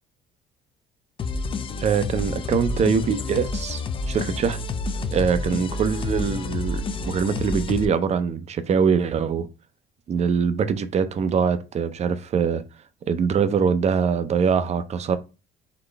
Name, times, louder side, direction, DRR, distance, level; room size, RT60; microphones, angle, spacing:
sound 1, 1.2-7.9, left 3 dB, 30° left, 0.4 m, -29 dB
voice 1, 1.8-3.8 4.1-4.6 5.1-9.5 10.1-12.6 13.1-15.2, right 6 dB, 40° right, 0.6 m, -23 dB
4.1 x 3.2 x 3.3 m
cardioid pair, 110°, 17 cm